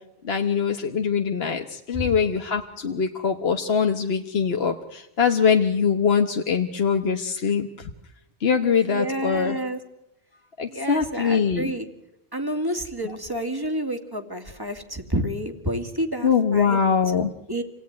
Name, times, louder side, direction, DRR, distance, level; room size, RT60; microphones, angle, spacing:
voice 1, 0.2-7.9 8.4-9.6 10.6-11.7 16.2-17.3, left 6 dB, 70° left, 5 dB, 1.4 m, -23 dB
voice 2, 8.9-9.8 10.7-11.9 12.3-16.8 17.5-17.6, right 1 dB, 20° right, 5 dB, 2.4 m, -29 dB
27.5 x 18.0 x 9.5 m, 0.90 s
omnidirectional pair, 1.1 m